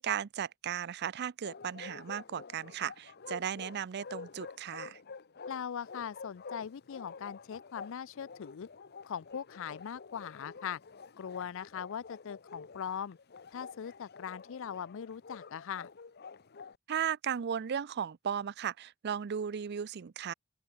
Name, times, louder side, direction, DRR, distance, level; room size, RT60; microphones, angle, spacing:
voice 1, 0.0-5.0 16.9-20.3, right 8 dB, 55° right, 0.5 m, -36 dB
Bark, 1.4-16.8, left 5 dB, 50° left, 0.9 m, -49 dB
voice 2, 5.5-8.7 9.0-10.8 11.2-13.2 13.5-15.9, left 8 dB, 65° left, 0.4 m, -40 dB
open air
head